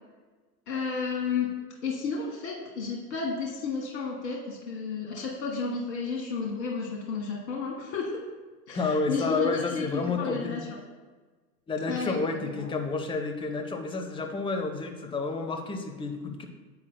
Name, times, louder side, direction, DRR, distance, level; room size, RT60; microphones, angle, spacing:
voice 1, 0.7-1.5 1.8-8.1 8.7-10.7 11.9-12.7, left 5 dB, 50° left, -2 dB, 1.7 m, -32 dB
voice 2, 8.7-10.7 11.7-16.4, left 3 dB, 10° left, 5 dB, 0.6 m, -30 dB
9.6 x 8.1 x 2.2 m, 1.3 s
figure-of-eight pair, 90°, 50 cm